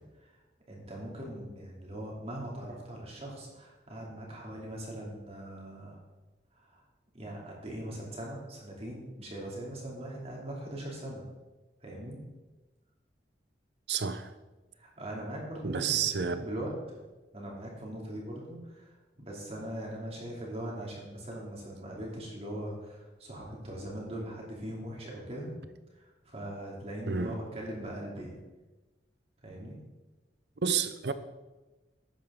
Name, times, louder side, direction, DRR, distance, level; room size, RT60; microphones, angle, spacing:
voice 1, 0.7-6.0 6.6-6.8 7.1-11.2 11.8-12.2 14.8-16.0 16.3-17.0 17.3-25.6 25.9-28.4 29.4-29.8, right 1 dB, 35° right, 2.7 m, -40 dB
voice 2, 13.9-14.3 15.6-16.5 27.1-27.4 30.6-31.1, right 6 dB, 70° right, 0.7 m, -30 dB
11.5 x 8.7 x 3.7 m
head